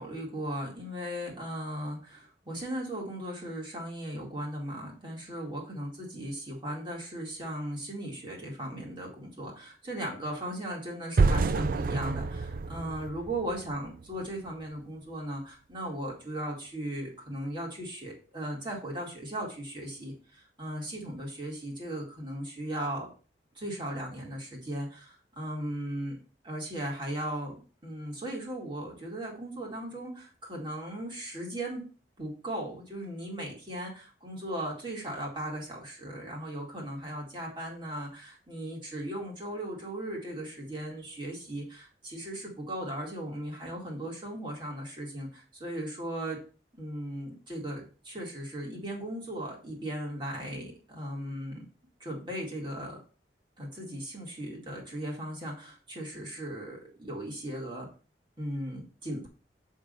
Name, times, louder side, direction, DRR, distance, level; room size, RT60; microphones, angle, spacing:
voice 1, 0.0-23.1 23.5-26.2 26.4-27.6 27.8-31.8 32.2-46.4 46.7-51.6 52.0-53.0 53.6-57.9 58.4-59.3, right 1 dB, 25° right, -2 dB, 2.3 m, -37 dB
sound 1, 11.2-14.2, right 4 dB, 55° right, 0.5 m, -28 dB
7.8 x 3.7 x 5.3 m, 0.36 s
head